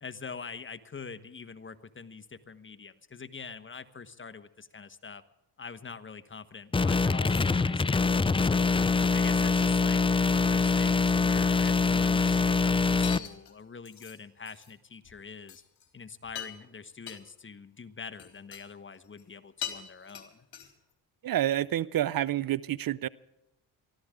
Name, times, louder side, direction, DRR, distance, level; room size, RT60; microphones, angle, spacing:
voice 1, 0.0-5.2 5.6-8.7 9.1-15.6 15.9-20.5, left 5 dB, 30° left, 11 dB, 1.2 m, -44 dB
sound 1, 6.7-13.2, left 4 dB, 15° left, 0.4 m, -24 dB
sound 2, 6.8-7.0 7.3-7.8 12.2-12.8 13.0-14.2 14.5-14.7 15.0-15.2 15.5-15.9 16.2-16.7 17.1-17.2 18.1-18.6 18.9-19.3 19.6-20.9, left 10 dB, 65° left, 3.5 m, -43 dB
voice 2, 21.2-23.1, right 12 dB, 55° right, 20 dB, 0.6 m, -28 dB
23.5 x 15.0 x 3.7 m, 0.93 s
cardioid pair, 80°, 40 cm